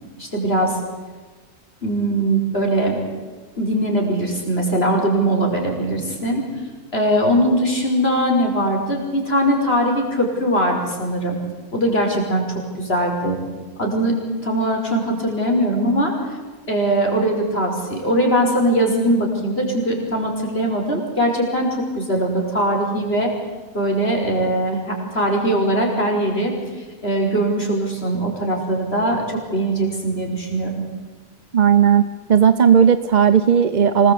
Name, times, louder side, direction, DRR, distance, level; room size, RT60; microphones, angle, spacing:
voice 1, 0.2-0.8 1.8-3.0 3.6-6.4 6.9-11.4 11.7-13.4 13.8-16.2 16.7-23.3 23.7-30.7, right 1 dB, 40° left, 1 dB, 5.7 m, -21 dB
voice 2, 31.5-34.1, right 8 dB, 40° right, 12 dB, 0.7 m, -15 dB
26.0 x 19.5 x 8.6 m, 1.4 s
omnidirectional pair, 1.6 m